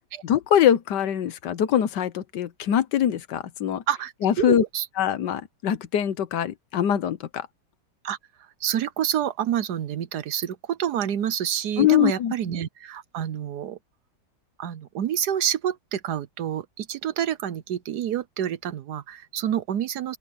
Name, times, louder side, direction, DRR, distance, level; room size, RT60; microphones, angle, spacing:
voice 1, 0.2-3.8 4.2-4.6 5.0-7.5 11.8-12.3, left 10 dB, 75° left, 1.5 m, -23 dB
voice 2, 3.9-4.9 8.0-8.2 8.6-13.8 14.6-20.2, right 10 dB, 70° right, 1.3 m, -28 dB
open air
omnidirectional pair, 1.9 m